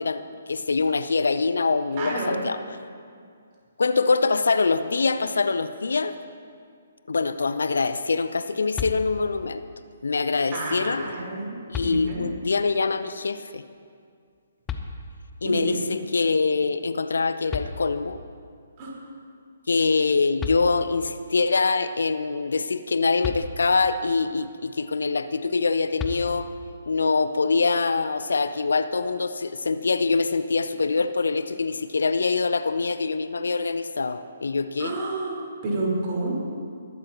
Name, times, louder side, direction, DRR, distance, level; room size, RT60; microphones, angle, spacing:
voice 1, 0.0-2.6 3.8-6.2 7.1-9.6 10.0-11.1 11.7-13.6 15.4-18.2 19.7-26.5 26.9-35.0, left 4 dB, 65° left, 12 dB, 0.5 m, -24 dB
voice 2, 1.9-2.4 10.5-11.6 11.8-12.3 15.4-15.8 18.8-18.9 34.8-36.3, right 2 dB, 30° right, -4 dB, 4.2 m, -29 dB
sound 1, 8.7-9.5 11.0-11.1 11.7-12.5 14.7-15.4 17.2-17.3 17.5-18.3 20.0-20.1 20.4-21.1 23.2-24.0 26.0-26.7, left 5 dB, 15° left, 0.8 m, -35 dB
22.0 x 12.0 x 3.0 m, 2.2 s
figure-of-eight pair, 135°, 0 cm